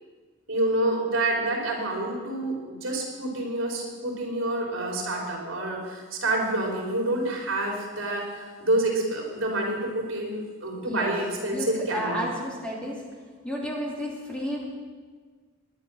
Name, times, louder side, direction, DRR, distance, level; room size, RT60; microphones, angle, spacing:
voice 1, 0.5-12.2, right 1 dB, 70° right, 0 dB, 3.9 m, -28 dB
voice 2, 11.9-12.9 13.4-14.7, equal, 5° left, -4 dB, 3.0 m, -31 dB
21.0 x 10.5 x 6.4 m, 1.5 s
head